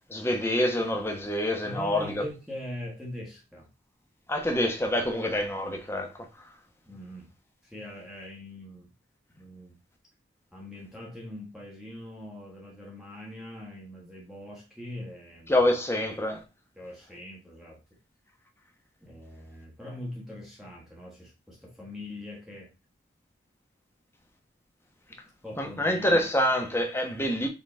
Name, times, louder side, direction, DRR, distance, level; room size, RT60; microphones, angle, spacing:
voice 1, 0.1-2.2 4.3-6.5 15.5-16.4 25.6-27.5, left 1 dB, 15° left, 1.1 m, -26 dB
voice 2, 1.6-3.7 6.9-7.3 7.6-8.9 9.3-9.8 10.5-15.6 16.7-17.8 19.0-22.7 25.4-26.2, left 1 dB, ahead, 1.4 m, -42 dB
5.8 x 4.0 x 4.3 m
head